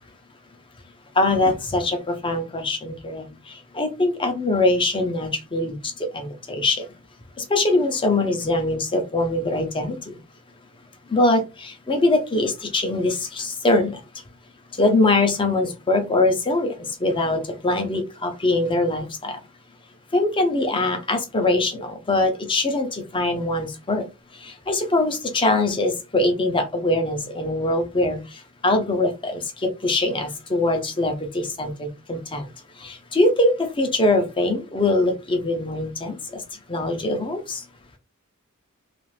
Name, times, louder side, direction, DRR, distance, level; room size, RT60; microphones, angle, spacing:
voice 1, 1.2-6.8 7.5-10.2 11.1-14.0 14.8-19.4 20.1-24.1 24.4-28.2 28.6-32.5 32.8-36.4 36.7-37.6, left 2 dB, 20° left, 5 dB, 0.6 m, -22 dB
2.5 x 2.5 x 3.2 m, 0.27 s
head